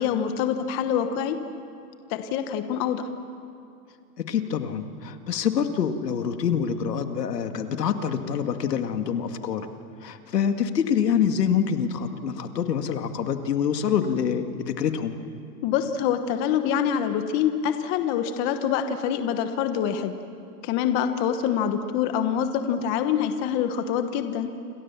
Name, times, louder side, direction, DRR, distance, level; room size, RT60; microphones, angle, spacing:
voice 1, 0.0-1.4 2.1-3.1 15.6-20.1 20.6-24.5, left 8 dB, 25° left, 8 dB, 1.2 m, -25 dB
voice 2, 4.2-9.7 10.0-15.2, left 7 dB, 90° left, 7 dB, 2.3 m, -26 dB
28.0 x 25.5 x 7.3 m, 2.5 s
hypercardioid pair, 160°, 47 cm